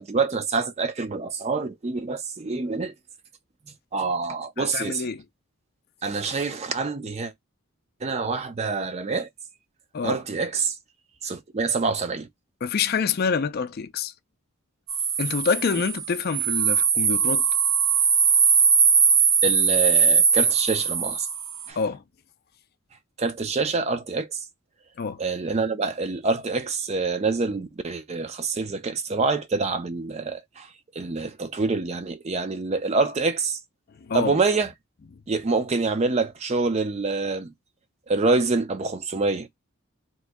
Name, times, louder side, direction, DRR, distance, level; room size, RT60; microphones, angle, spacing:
voice 1, 0.0-2.9 3.9-5.1 6.0-7.3 8.0-9.3 10.0-10.8 11.2-12.3 19.4-21.3 21.7-21.8 23.2-24.4 25.2-30.7 31.0-33.6 34.1-34.7 35.3-37.5 38.1-39.6, right 4 dB, 30° right, 0.4 m, -26 dB
voice 2, 4.6-5.2 9.9-10.2 12.6-14.1 15.2-17.5 21.8-22.0 25.0-25.2 34.0-34.3, left 5 dB, 45° left, 0.4 m, -26 dB
sound 1, 14.9-21.7, right 6 dB, 75° right, 0.7 m, -20 dB
2.9 x 2.6 x 3.4 m
head